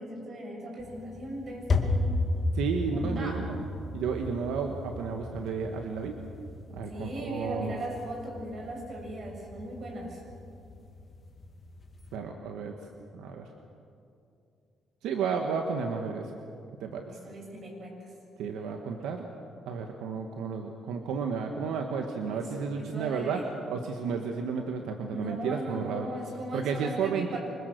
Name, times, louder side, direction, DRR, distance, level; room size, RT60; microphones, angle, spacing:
voice 1, 0.0-2.1 2.9-3.4 6.9-10.2 17.0-18.0 22.2-22.5 22.7-23.5 25.1-27.4, right 1 dB, 50° right, 0 dB, 7.6 m, -38 dB
sound 1, 0.8-12.2, left 2 dB, 40° left, 2.2 m, -35 dB
voice 2, 2.5-3.6 3.9-6.1 6.7-7.8 12.1-12.7 13.1-13.5 15.0-16.3 16.8-17.0 18.4-19.3 19.7-26.1 26.5-27.4, right 5 dB, 90° right, 4 dB, 1.5 m, -32 dB
25.5 x 22.0 x 6.7 m, 2.6 s
cardioid pair, 90°, 0 cm